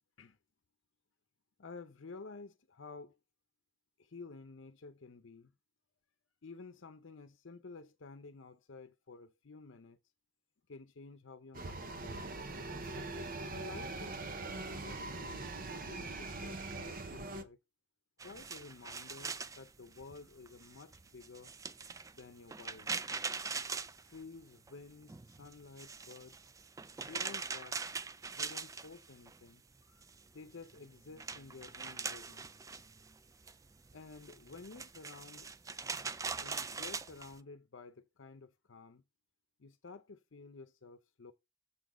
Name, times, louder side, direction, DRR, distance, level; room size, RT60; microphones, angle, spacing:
voice 1, 1.6-3.2 4.0-5.5 6.4-10.0 10.7-12.3 13.5-15.4 15.7-17.6 18.2-21.5 22.1-23.1 24.0-26.4 27.0-27.9 28.3-30.0 30.3-32.5 33.9-35.5 36.4-39.0 39.6-41.3, left 4 dB, 75° left, 0.7 m, -52 dB
sound 1, 11.5-17.4, right 2 dB, 45° right, 0.9 m, -42 dB
sound 2, 18.2-24.7 25.0-29.4 29.7-37.4, right 4 dB, 15° right, 0.3 m, -42 dB
7.5 x 3.9 x 6.1 m
head